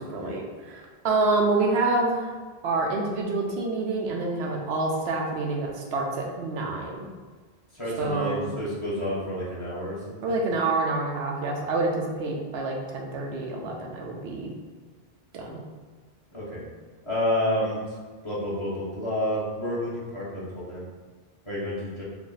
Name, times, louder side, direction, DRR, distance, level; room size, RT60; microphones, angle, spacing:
voice 1, 0.1-2.3 2.6-7.1 8.0-8.5 10.2-14.5 15.3-15.6, right 3 dB, 85° right, 0 dB, 0.9 m, -27 dB
voice 2, 7.7-10.4 16.3-16.6 17.0-18.0 18.2-20.9 21.4-22.0, left 1 dB, 30° left, -8 dB, 1.1 m, -30 dB
3.4 x 2.1 x 3.8 m, 1.4 s
omnidirectional pair, 1.0 m